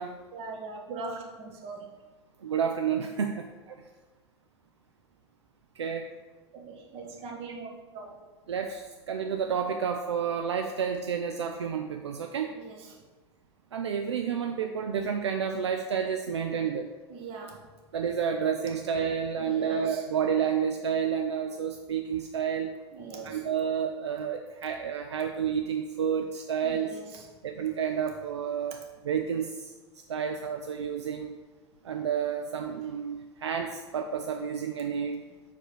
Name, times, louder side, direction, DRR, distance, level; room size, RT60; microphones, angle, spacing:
voice 1, 0.3-1.9 6.5-8.2 12.5-13.0 17.1-17.7 19.4-20.0 22.9-23.5 26.6-27.3 28.7-28.8, right 4 dB, 45° right, 1 dB, 1.3 m, -41 dB
voice 2, 2.4-3.5 5.8-6.1 8.5-12.5 13.7-16.9 17.9-22.7 23.3-26.9 27.4-28.8 29.0-29.7 30.1-31.4 31.8-35.2, right 7 dB, 75° right, 4 dB, 0.4 m, -30 dB
5.4 x 4.5 x 4.5 m, 1.3 s
figure-of-eight pair, 80°, 15 cm